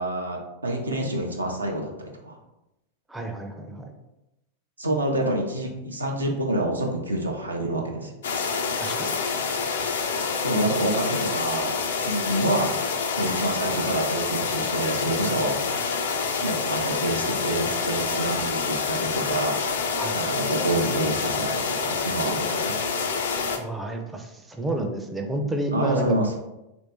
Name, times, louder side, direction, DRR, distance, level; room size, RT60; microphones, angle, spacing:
voice 1, 0.0-2.4 4.8-8.1 10.4-12.8 13.2-15.6 16.4-19.9 20.1-22.8 25.7-26.3, right 1 dB, 80° right, 1 dB, 0.5 m, -27 dB
voice 2, 3.1-3.8 8.7-9.2 20.0-20.2 23.6-26.2, right 1 dB, 5° right, 2 dB, 0.5 m, -30 dB
sound 1, 8.2-23.6, left 5 dB, 60° left, 0.4 m, -27 dB
3.1 x 2.6 x 3.0 m, 0.92 s
figure-of-eight pair, 90°, 0 cm